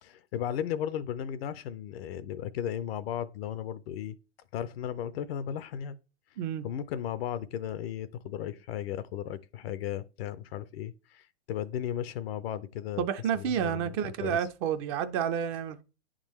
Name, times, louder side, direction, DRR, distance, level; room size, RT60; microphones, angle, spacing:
voice 1, 0.0-4.1 4.5-6.0 6.6-13.0 13.4-14.4, left 10 dB, 60° left, 0.5 m, -35 dB
voice 2, 13.0-15.8, right 8 dB, 35° right, 0.4 m, -30 dB
9.6 x 3.7 x 3.1 m
hypercardioid pair, 125°, 34 cm